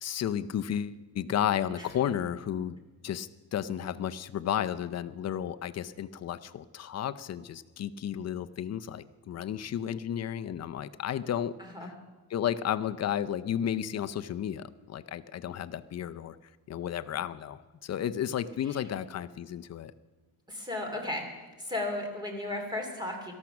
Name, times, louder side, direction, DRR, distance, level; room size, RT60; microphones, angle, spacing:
voice 1, 0.0-2.8 3.0-11.5 11.8-11.9 12.3-16.4 16.7-19.9, left 10 dB, 35° left, 12 dB, 0.5 m, -33 dB
voice 2, 11.6-11.9 18.6-18.8 20.5-21.3 21.6-23.3, left 2 dB, 10° right, 3 dB, 2.7 m, -35 dB
18.0 x 13.5 x 5.9 m, 1.3 s
cardioid pair, 160°, 44 cm